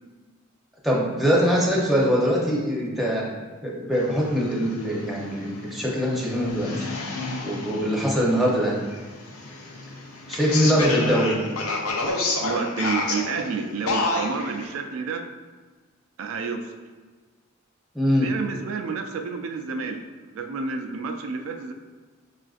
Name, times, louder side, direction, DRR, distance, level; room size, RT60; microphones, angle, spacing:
voice 1, 0.8-3.3 3.6-6.9 7.4-8.8 10.3-11.4 17.9-18.3, equal, ahead, -5 dB, 0.6 m, -22 dB
sound 1, 3.9-14.6, left 2 dB, 90° left, 0.6 m, -30 dB
voice 2, 12.4-15.2 16.2-16.7 18.2-20.0 20.3-21.7, right 4 dB, 75° right, 4 dB, 0.3 m, -30 dB
5.6 x 2.4 x 2.4 m, 1.4 s
head